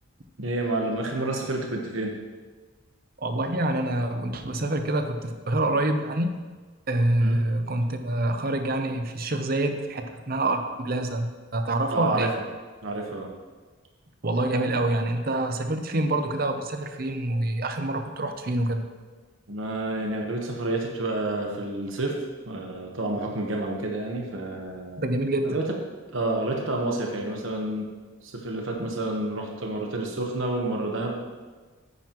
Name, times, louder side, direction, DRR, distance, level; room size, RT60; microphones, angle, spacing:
voice 1, 0.4-2.1 7.2-7.4 11.9-12.3 12.8-13.3 19.5-22.2 22.5-25.0 25.4-25.7 26.1-27.9 28.2-31.2, right 2 dB, 70° right, 1 dB, 1.2 m, -29 dB
voice 2, 3.2-6.3 6.9-12.3 14.2-18.9 25.0-25.5, right 1 dB, 45° right, 7 dB, 0.7 m, -26 dB
9.5 x 9.2 x 3.0 m, 1.4 s
head